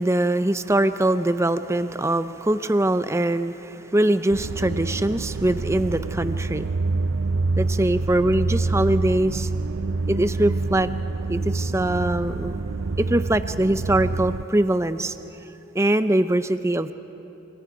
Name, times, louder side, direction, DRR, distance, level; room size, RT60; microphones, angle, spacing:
voice 1, 0.0-6.7 7.6-9.5 10.1-10.9 11.3-12.6 13.0-15.1 15.7-16.9, right 1 dB, 15° right, 11 dB, 0.6 m, -22 dB
sound 1, 4.3-14.5, right 3 dB, 75° right, 0.5 m, -27 dB
28.0 x 25.5 x 4.8 m, 2.9 s
head